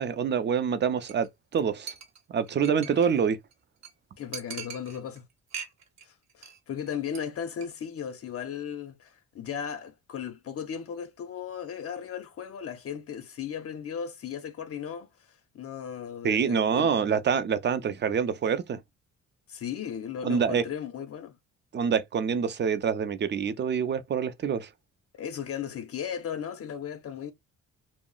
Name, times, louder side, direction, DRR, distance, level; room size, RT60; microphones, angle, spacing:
voice 1, 0.0-1.9 2.3-3.4 16.2-18.8 20.2-20.6 21.7-24.7, right 7 dB, 35° right, 0.5 m, -26 dB
Chink clink, 1.1-1.3 1.5-1.6 1.9-3.2 3.5-3.6 3.8-3.9 4.3-5.2 5.5-6.0 6.3-6.6 6.9-7.2 7.5-7.7, right 7 dB, 65° right, 0.9 m, -41 dB
voice 2, 2.9-3.2 4.2-5.2 6.0-17.1 19.5-21.4 25.2-27.3, left 8 dB, 50° left, 0.6 m, -36 dB
2.3 x 2.0 x 3.7 m
cardioid pair, 90°, 30 cm